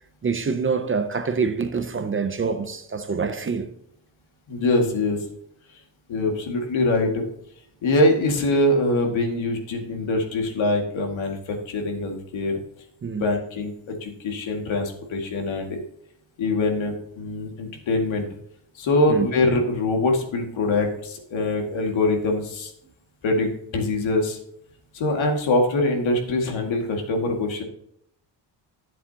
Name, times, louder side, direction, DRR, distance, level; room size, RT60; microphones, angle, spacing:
voice 1, 0.2-3.7 13.0-13.3 19.1-19.3, right 5 dB, 30° right, 0.6 m, -25 dB
voice 2, 4.5-5.2 6.1-7.2 7.8-12.6 13.2-15.8 16.4-18.3 18.8-22.7 23.2-24.4 24.9-27.6, left 2 dB, 85° left, 2.2 m, -23 dB
12.5 x 7.6 x 2.8 m
wide cardioid pair, 180°, 46 cm